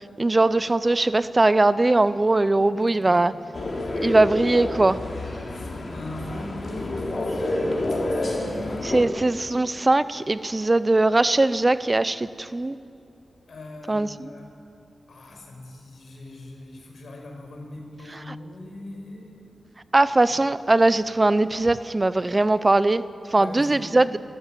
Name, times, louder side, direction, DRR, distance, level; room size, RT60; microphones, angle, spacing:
voice 1, 0.2-3.3 4.0-5.0 8.8-12.8 13.9-14.3 18.3-18.4 19.9-23.0 23.3-24.2, right 2 dB, 25° right, 15 dB, 0.6 m, -20 dB
voice 2, 2.7-4.2 5.5-9.1 13.5-14.5 15.1-19.5 20.3-20.4 23.3-23.9, left 1 dB, 70° left, 2 dB, 6.0 m, -40 dB
sound 1, 3.5-9.0, left 1 dB, 50° left, 3.7 m, -29 dB
27.5 x 14.0 x 9.2 m, 2.6 s
cardioid pair, 75°, 0 cm